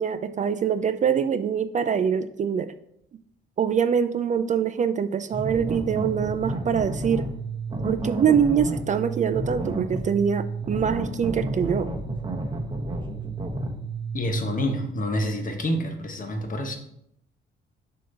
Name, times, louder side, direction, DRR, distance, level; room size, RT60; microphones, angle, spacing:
voice 1, 0.0-2.7 3.6-7.3 7.8-11.9, right 7 dB, 40° right, 11 dB, 0.4 m, -24 dB
sound 1, 5.3-14.3, right 2 dB, 25° right, 0.9 m, -31 dB
voice 2, 14.1-16.8, equal, 40° left, 4 dB, 1.1 m, -27 dB
6.3 x 2.9 x 5.4 m, 0.73 s
cardioid pair, 90°, 20 cm